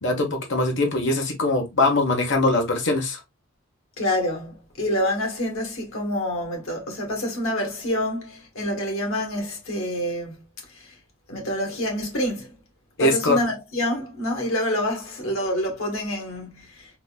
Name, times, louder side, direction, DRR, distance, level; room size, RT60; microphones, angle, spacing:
voice 1, 0.0-3.2 13.0-13.4, left 2 dB, 60° left, 1.0 m, -22 dB
voice 2, 4.0-10.4 10.7-10.9 11.3-12.5 13.0-16.9, left 1 dB, 90° left, 1.5 m, -27 dB
3.9 x 2.5 x 2.3 m
head